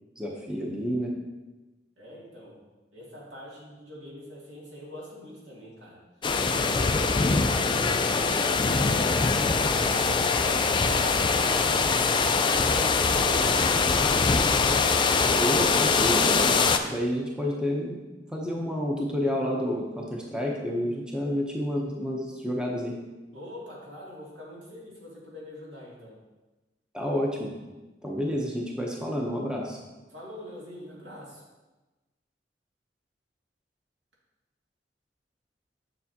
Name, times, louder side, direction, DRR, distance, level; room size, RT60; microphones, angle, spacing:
voice 1, 0.2-1.1 15.4-16.6 16.8-18.1 18.3-23.0 26.9-27.5 28.0-29.8, equal, 5° right, -2 dB, 0.7 m, -29 dB
voice 2, 2.0-2.6 2.9-6.0 6.5-9.3 9.7-12.7 13.1-14.9 23.3-26.2 30.1-31.4, equal, 75° right, -5 dB, 2.4 m, -43 dB
sound 1, 6.2-16.8, left 4 dB, 25° left, 0.4 m, -23 dB
7.5 x 6.8 x 2.8 m, 1.1 s
head